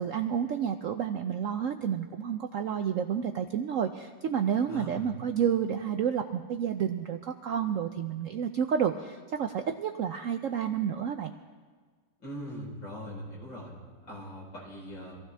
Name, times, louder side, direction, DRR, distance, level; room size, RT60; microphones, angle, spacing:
voice 1, 0.0-11.3, right 8 dB, 70° right, 6 dB, 0.7 m, -30 dB
voice 2, 4.7-5.1 12.2-13.7 14.1-15.2, equal, 85° left, -5 dB, 5.0 m, -41 dB
25.0 x 15.5 x 3.3 m, 1.5 s
omnidirectional pair, 2.0 m